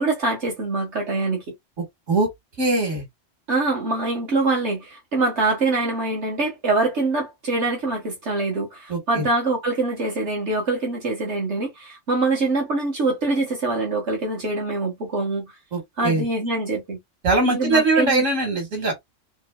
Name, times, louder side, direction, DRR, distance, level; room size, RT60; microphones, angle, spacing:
voice 1, 0.0-1.4 3.5-15.5 16.0-17.0 17.4-18.2, right 3 dB, 65° right, 1.7 m, -24 dB
voice 2, 2.6-3.0 8.9-9.3 15.7-16.2 17.2-18.9, right 2 dB, 85° right, 2.1 m, -21 dB
4.4 x 3.1 x 2.2 m
omnidirectional pair, 1.3 m